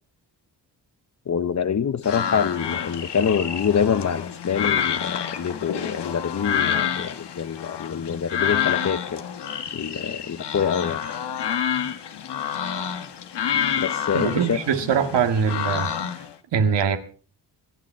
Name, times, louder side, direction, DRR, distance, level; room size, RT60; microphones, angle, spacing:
voice 1, 1.3-9.2 9.7-11.0 13.8-14.6, left 7 dB, 40° left, 0.9 m, -25 dB
sound 1, 2.0-16.3, left 8 dB, 75° left, 1.5 m, -28 dB
voice 2, 14.1-15.9 16.5-17.0, right 6 dB, 80° right, 1.9 m, -22 dB
24.0 x 9.2 x 4.5 m
cardioid pair, 75°, 42 cm